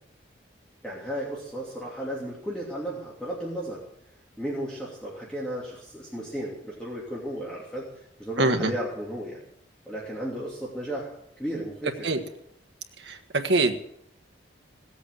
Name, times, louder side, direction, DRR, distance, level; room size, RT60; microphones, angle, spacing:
voice 1, 0.8-3.8 4.4-7.9 8.2-9.4 9.8-11.1 11.4-12.2, equal, 5° left, -6 dB, 2.8 m, -34 dB
voice 2, 8.4-8.7 12.0-12.2 13.4-13.8, right 2 dB, 65° right, 5 dB, 1.4 m, -22 dB
17.5 x 8.3 x 7.4 m, 0.77 s
head